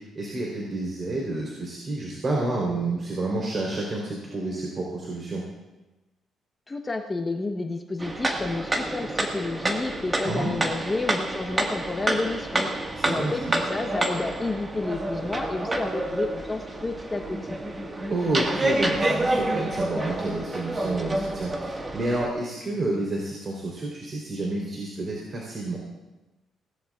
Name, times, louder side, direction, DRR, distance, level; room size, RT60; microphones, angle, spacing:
voice 1, 0.0-5.4 10.2-10.5 12.9-13.5 18.1-25.8, right 2 dB, 40° right, -2 dB, 3.6 m, -29 dB
voice 2, 6.7-12.7 13.0-17.6, left 3 dB, 25° left, 3 dB, 1.0 m, -30 dB
sound 1, 8.0-22.3, right 1 dB, 25° right, 1.7 m, -28 dB
20.5 x 17.5 x 2.4 m, 1.1 s
cardioid pair, 90°, 0 cm